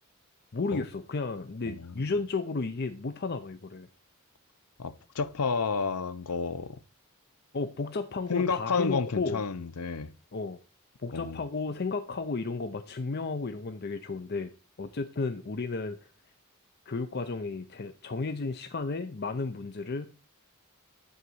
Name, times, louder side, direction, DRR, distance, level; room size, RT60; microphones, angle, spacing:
voice 1, 0.5-3.9 7.5-9.4 10.3-10.6 11.0-14.5 14.8-16.1 16.9-20.1, left 3 dB, 45° left, 0.6 m, -33 dB
voice 2, 1.7-2.1 4.8-6.8 8.3-10.1 11.1-11.4, left 4 dB, 85° left, 0.7 m, -31 dB
11.0 x 4.0 x 7.8 m
head